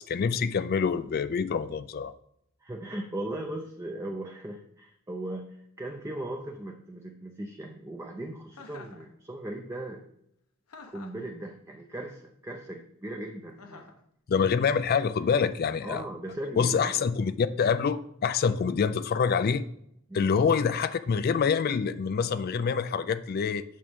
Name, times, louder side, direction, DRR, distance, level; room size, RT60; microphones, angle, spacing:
voice 1, 0.0-2.1 14.3-16.0 16.6-19.6 20.1-23.6, left 6 dB, 45° left, 12 dB, 0.3 m, -26 dB
voice 2, 2.6-10.0 10.9-14.0 15.8-17.1 20.1-20.3, right 1 dB, 15° right, 2 dB, 0.5 m, -38 dB
Chuckle chortle, 8.5-9.0 10.7-11.3 13.6-14.0, left 4 dB, 85° left, 1.0 m, -48 dB
8.5 x 6.1 x 3.6 m, 0.74 s
head